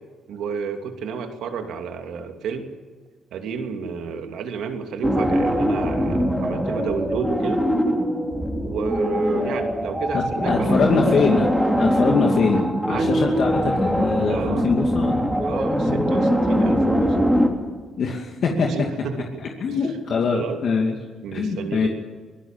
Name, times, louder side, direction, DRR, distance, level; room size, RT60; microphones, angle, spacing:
voice 1, 0.3-2.6 3.3-7.6 8.6-10.7 12.9-13.3 14.3-14.7 15.4-17.2 18.5-19.4 19.7-19.8 20.3-20.6 21.2-21.9, right 6 dB, 80° right, 5 dB, 2.7 m, -31 dB
sound 1, 5.0-17.5, equal, ahead, 3.5 m, -22 dB
voice 2, 10.1-11.5 11.8-15.3 18.0-18.7 19.6-20.9 21.3-21.9, left 5 dB, 60° left, 1 dB, 2.5 m, -23 dB
24.5 x 17.5 x 7.5 m, 1.4 s
cardioid pair, 90°, 0 cm